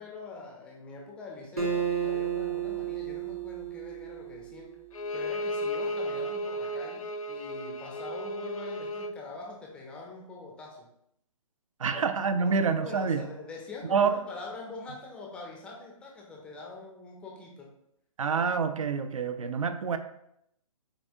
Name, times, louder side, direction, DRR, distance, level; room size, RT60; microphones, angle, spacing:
voice 1, 0.0-4.7 5.1-10.9 11.9-17.7, left 3 dB, 5° left, -1 dB, 0.4 m, -44 dB
Acoustic guitar, 1.6-5.0, right 8 dB, 90° right, 1.6 m, -32 dB
Bowed string instrument, 4.9-9.2, equal, 70° left, 0.6 m, -34 dB
voice 2, 11.8-13.3 13.9-14.2 18.2-20.0, right 5 dB, 65° right, 10 dB, 0.5 m, -27 dB
7.0 x 2.7 x 2.6 m, 0.76 s
figure-of-eight pair, 140°, 19 cm